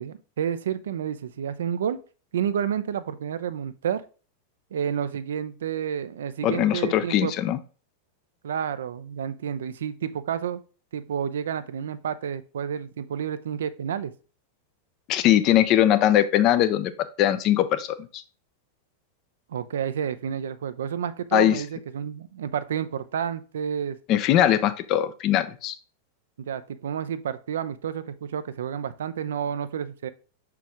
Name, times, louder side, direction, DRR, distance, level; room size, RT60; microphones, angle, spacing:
voice 1, 0.0-2.0 2.3-4.0 4.7-7.3 8.4-10.6 10.9-14.1 19.5-24.0 26.4-30.1, right 8 dB, 65° right, 13 dB, 0.4 m, -30 dB
voice 2, 6.4-7.6 15.1-16.9 17.2-18.2 21.3-21.6 24.1-25.7, left 12 dB, 40° left, 12 dB, 0.6 m, -21 dB
6.0 x 4.6 x 3.5 m, 0.36 s
figure-of-eight pair, 90°, 0 cm